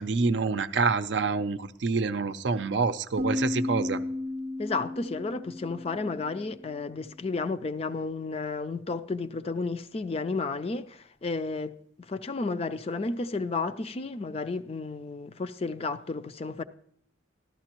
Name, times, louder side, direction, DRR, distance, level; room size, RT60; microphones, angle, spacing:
voice 1, 0.0-4.0, right 4 dB, 65° right, 0.5 m, -27 dB
sound 1, 3.2-6.8, left 2 dB, 15° right, 0.6 m, -34 dB
voice 2, 4.6-16.6, left 3 dB, 30° left, 0.4 m, -32 dB
13.5 x 12.0 x 3.0 m
head